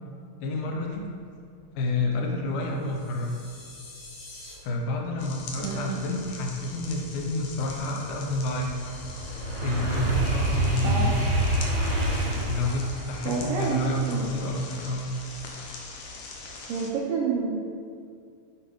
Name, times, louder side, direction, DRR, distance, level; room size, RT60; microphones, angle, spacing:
voice 1, 0.4-1.1 1.8-3.3 4.6-8.8 9.6-11.4 12.5-15.1, left 2 dB, 75° left, 0 dB, 1.9 m, -29 dB
sound 1, 2.7-4.5, left 2 dB, 45° left, 1.7 m, -47 dB
sound 2, 5.2-16.9, left 3 dB, 90° left, 1.6 m, -43 dB
voice 2, 5.6-6.0 10.8-11.2 13.3-14.3 16.7-17.6, right 5 dB, 80° right, -3 dB, 2.0 m, -29 dB
sound 3, 6.6-15.6 16.1-16.4, right 1 dB, 50° right, 1.4 m, -29 dB
7.5 x 4.7 x 5.0 m, 2.3 s
omnidirectional pair, 4.6 m